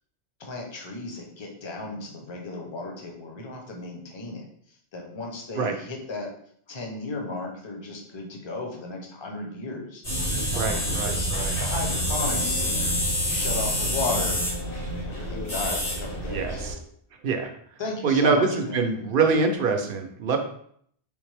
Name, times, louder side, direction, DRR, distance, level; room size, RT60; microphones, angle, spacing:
voice 1, 0.4-4.4 4.9-6.3 6.7-11.3 11.6-12.7 13.2-14.5 15.0-16.7 17.8-18.8, left 3 dB, 30° left, 1 dB, 0.7 m, -35 dB
sound 1, 10.0-16.7, equal, 85° left, 2.1 m, -27 dB
voice 2, 10.5-11.5 16.3-16.7 17.2-17.5 18.0-20.4, right 4 dB, 60° right, 5 dB, 0.7 m, -24 dB
3.5 x 3.4 x 3.3 m, 0.65 s
omnidirectional pair, 1.1 m